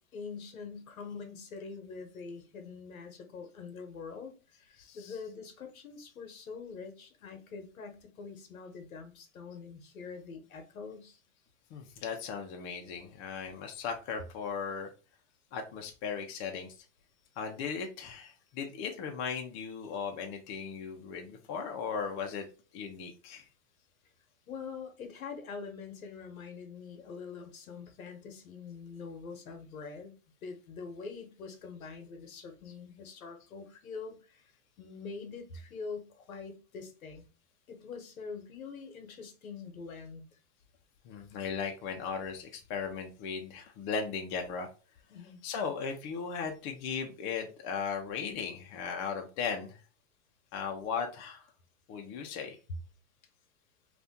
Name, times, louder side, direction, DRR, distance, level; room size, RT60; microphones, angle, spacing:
voice 1, 0.0-11.2 24.5-30.1 30.4-34.5 34.8-37.3 37.7-40.3 45.1-45.4, left 5 dB, 85° left, 1.1 m, -44 dB
voice 2, 4.8-5.2 11.7-14.9 15.5-16.8 17.4-22.5 22.7-23.5 41.0-44.7 45.2-49.8 50.5-51.5 51.9-52.6, left 6 dB, 30° left, 0.6 m, -37 dB
2.7 x 2.4 x 3.5 m
hypercardioid pair, 130°, 41 cm